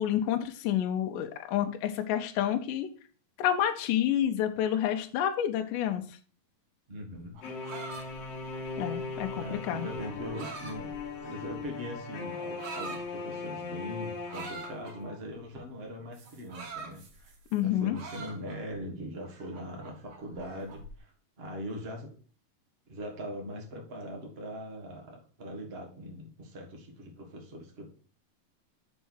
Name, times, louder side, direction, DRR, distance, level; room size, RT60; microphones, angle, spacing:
voice 1, 0.0-2.9 3.4-6.0 8.8-9.9 17.5-18.0, left 10 dB, 75° left, 5 dB, 2.0 m, -29 dB
voice 2, 6.9-7.4 9.3-10.9 11.2-17.3 17.6-21.1 21.4-22.1 22.9-27.9, equal, 80° right, 1 dB, 0.5 m, -41 dB
sound 1, 7.2-11.6 12.3-13.0 14.3-15.0 16.1-17.6 17.9-18.8 19.2-20.9, right 4 dB, 60° right, 3.0 m, -44 dB
sound 2, 7.4-15.2, left 4 dB, 55° left, 1.9 m, -39 dB
6.4 x 4.5 x 6.2 m, 0.41 s
omnidirectional pair, 4.3 m